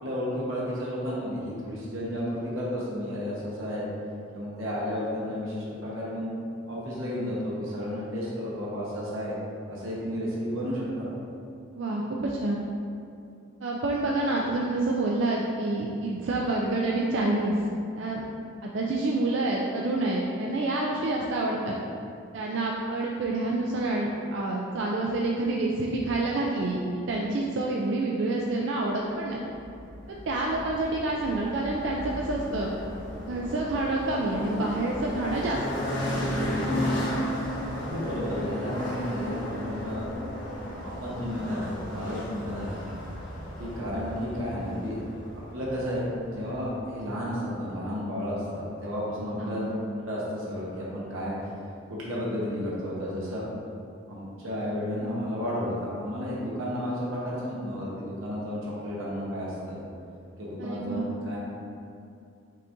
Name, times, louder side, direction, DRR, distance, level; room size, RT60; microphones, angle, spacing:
voice 1, 0.0-3.8 4.3-6.3 6.7-9.4 9.7-11.1 37.7-40.1 40.8-42.8 43.6-45.0 45.3-49.8 50.1-51.4 51.9-53.5 54.1-59.8 60.4-61.4, equal, 80° right, -6 dB, 0.9 m, -32 dB
voice 2, 11.8-12.6 13.6-17.6 18.0-18.2 18.6-21.7 22.3-29.4 30.1-32.7 33.3-35.6 49.4-49.7 60.6-61.1, right 2 dB, 65° right, -2 dB, 0.4 m, -28 dB
sound 1, 29.5-46.9, equal, 65° left, 1.3 m, -34 dB
5.5 x 3.6 x 2.6 m, 2.5 s
head